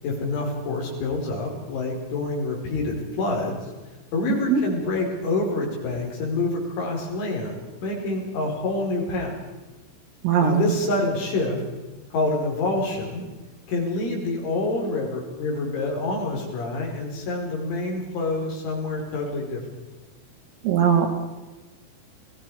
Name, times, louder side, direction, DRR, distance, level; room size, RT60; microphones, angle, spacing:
voice 1, 0.0-3.6 4.1-7.6 7.8-9.3 10.4-11.6 12.1-13.3 13.7-19.6, left 2 dB, 70° left, 0 dB, 7.2 m, -27 dB
voice 2, 10.2-10.6 20.6-21.1, right 8 dB, 80° right, 2 dB, 5.3 m, -19 dB
30.0 x 19.0 x 4.9 m, 1.2 s
omnidirectional pair, 5.8 m